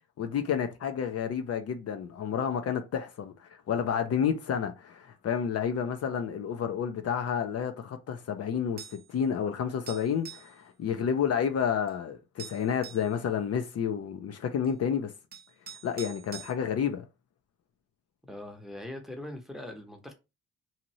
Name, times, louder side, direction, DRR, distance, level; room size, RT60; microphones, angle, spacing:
voice 1, 0.2-15.1 15.8-17.1, left 7 dB, 55° left, 0.6 m, -30 dB
sound 1, 8.8-9.1 9.9-10.5 11.9-12.0 12.4-13.1 14.6-14.7 15.3-16.5, right 8 dB, 30° right, 0.6 m, -45 dB
voice 2, 18.2-20.1, left 1 dB, ahead, 0.8 m, -42 dB
2.8 x 2.5 x 3.0 m
cardioid pair, 90°, 30 cm